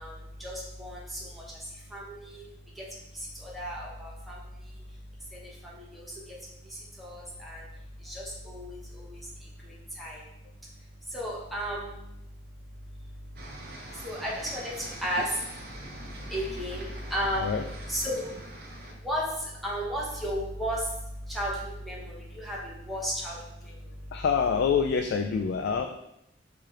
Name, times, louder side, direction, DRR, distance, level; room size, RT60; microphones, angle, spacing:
voice 1, 0.0-2.4 2.7-2.8 3.1-4.5 4.7-4.8 5.3-6.4 6.6-7.6 8.0-10.2 11.1-12.0 13.0-13.1 13.9-15.9 16.3-17.5 17.9-24.2, equal, ahead, -6 dB, 1.0 m, -35 dB
sound 1, 13.4-18.9, right 1 dB, 55° right, 0.8 m, -44 dB
voice 2, 24.1-25.9, left 6 dB, 60° left, 5 dB, 0.3 m, -26 dB
4.8 x 2.9 x 3.7 m, 0.81 s
head